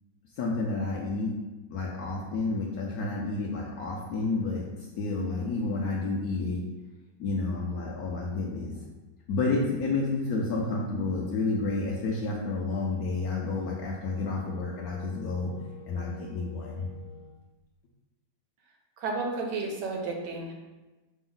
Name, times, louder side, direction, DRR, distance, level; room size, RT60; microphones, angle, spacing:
voice 1, 0.4-1.3 1.7-4.7 5.0-6.7 7.2-8.8 9.3-15.5 15.9-16.9, left 3 dB, 70° left, -3 dB, 1.0 m, -30 dB
Wind instrument woodwind instrument, 12.9-17.4, left 3 dB, 40° left, 0.4 m, -49 dB
voice 2, 19.0-20.5, right 3 dB, 75° right, 1 dB, 1.3 m, -32 dB
5.9 x 2.1 x 3.8 m, 1.1 s
omnidirectional pair, 1.9 m